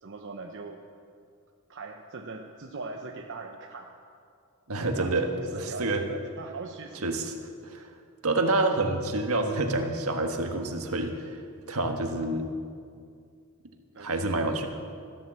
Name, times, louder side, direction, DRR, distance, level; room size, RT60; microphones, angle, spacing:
voice 1, 0.0-0.8 1.7-4.0 4.9-7.2 13.9-14.6, right 3 dB, 55° right, 2 dB, 0.9 m, -41 dB
voice 2, 4.7-6.0 7.0-7.3 7.6-7.9 8.2-11.4 11.7-12.5 14.0-14.7, right 2 dB, 75° right, 4 dB, 1.5 m, -28 dB
14.0 x 12.0 x 7.5 m, 2.3 s
head